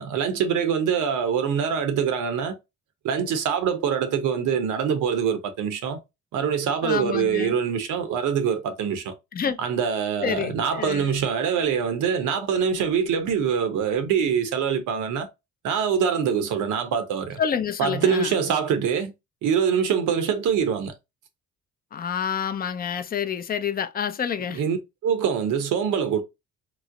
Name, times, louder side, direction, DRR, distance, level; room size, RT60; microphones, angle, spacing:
voice 1, 0.0-2.5 3.0-6.0 6.3-9.1 9.6-15.3 15.6-17.4 17.8-19.1 19.4-20.9 24.5-24.8 25.0-26.2, right 7 dB, 80° right, 0.8 m, -24 dB
voice 2, 6.8-7.5 9.3-9.6 10.2-11.1 17.4-18.3 21.9-24.6, left 7 dB, 30° left, 0.5 m, -28 dB
3.0 x 2.0 x 3.6 m
cardioid pair, 90°, 30 cm